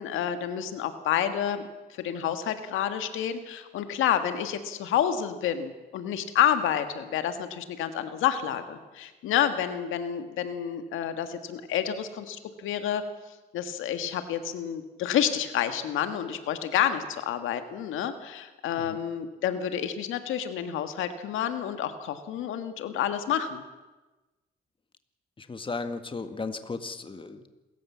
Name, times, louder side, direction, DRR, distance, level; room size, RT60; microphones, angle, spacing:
voice 1, 0.0-1.6 1.9-13.0 13.5-23.6, left 9 dB, 85° left, 9 dB, 1.7 m, -29 dB
voice 2, 25.4-27.5, left 3 dB, 25° left, 9 dB, 1.8 m, -35 dB
27.0 x 14.5 x 7.4 m, 1.2 s
cardioid pair, 90°, 20 cm